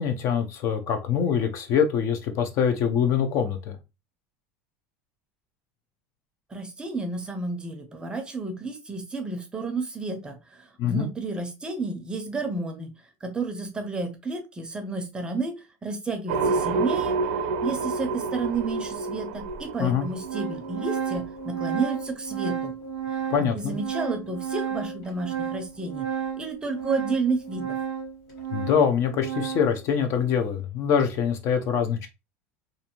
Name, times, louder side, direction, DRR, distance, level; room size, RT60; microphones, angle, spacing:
voice 1, 0.0-3.8 10.8-11.1 19.8-20.1 23.3-23.8 28.5-32.1, left 7 dB, 45° left, 0.5 m, -24 dB
voice 2, 6.5-22.7 23.1-23.2 23.5-26.1 26.4-27.8, right 3 dB, 15° right, 0.6 m, -31 dB
sound 1, 16.3-22.1, right 4 dB, 80° right, 0.6 m, -29 dB
Organ, 18.5-18.6 19.5-19.6 19.9-29.8, right 7 dB, 65° left, 1.5 m, -32 dB
2.6 x 2.5 x 2.8 m
supercardioid pair, 135°, 7 cm